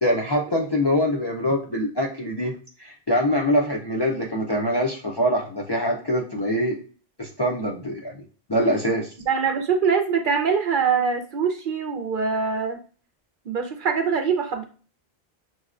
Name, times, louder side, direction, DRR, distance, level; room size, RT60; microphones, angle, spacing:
voice 1, 0.0-2.5 2.8-6.8 7.2-8.2 8.5-9.1, equal, 40° left, -2 dB, 0.4 m, -24 dB
voice 2, 9.3-12.8 13.5-14.6, right 6 dB, 60° right, 5 dB, 0.7 m, -23 dB
6.3 x 2.1 x 2.4 m, 0.39 s
omnidirectional pair, 1.0 m